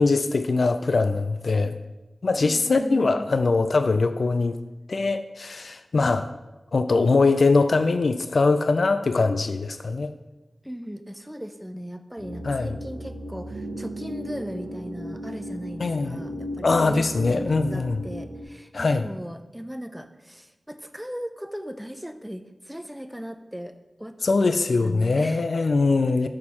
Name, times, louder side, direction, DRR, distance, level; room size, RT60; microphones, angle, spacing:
voice 1, 0.0-1.7 2.2-4.6 4.9-6.3 6.7-10.1 12.4-12.7 15.8-16.2 16.6-18.0 18.7-19.1 24.2-26.3, left 3 dB, 70° left, 10 dB, 0.3 m, -22 dB
voice 2, 2.4-3.3 10.6-24.2 24.5-25.5, equal, 5° right, 9 dB, 0.5 m, -37 dB
sound 1, 12.2-18.4, equal, 85° right, 0.9 m, -36 dB
6.5 x 4.3 x 5.5 m, 1.1 s
wide cardioid pair, 70°, 0 cm